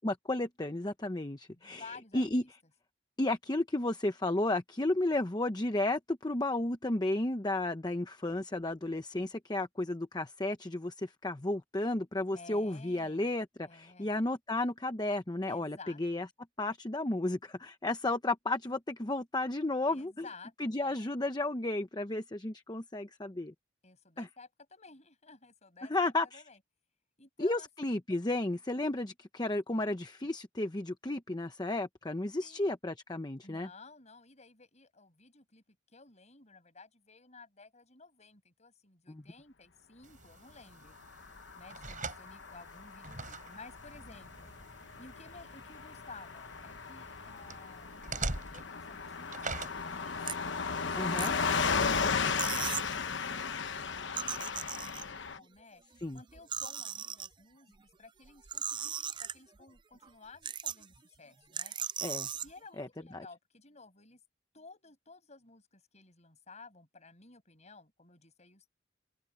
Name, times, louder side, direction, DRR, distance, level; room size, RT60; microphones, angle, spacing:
voice 1, 0.0-1.8 2.1-2.4 3.2-16.3 16.6-20.2 20.6-23.5 24.2-24.3 25.9-26.4 27.4-33.7 39.1-39.2 51.0-51.3 56.0-56.2 62.0-62.3 62.8-62.9, left 2 dB, 20° left, 0.9 m, -33 dB
voice 2, 1.5-2.3 12.3-13.3 13.6-14.1 15.5-16.2 19.9-21.0 23.8-26.6 27.2-27.9 28.9-29.0 32.4-32.6 33.4-44.5 45.0-50.4 50.7-55.8 56.1-61.7 62.4-64.2 64.5-68.7, left 3 dB, 35° left, 6.7 m, -54 dB
sound 1, 40.0-52.0, right 3 dB, 45° right, 6.6 m, -45 dB
Car passing by / Truck, 41.0-55.4, left 5 dB, 70° left, 1.1 m, -35 dB
sound 2, 49.6-49.8 50.2-50.4 50.9-51.7 52.0-52.1 52.4-52.9 54.0-55.3 55.9-57.3 58.2-59.6 60.0-60.1 60.4-61.0 61.5-62.5, right 8 dB, 25° right, 0.4 m, -38 dB
open air
head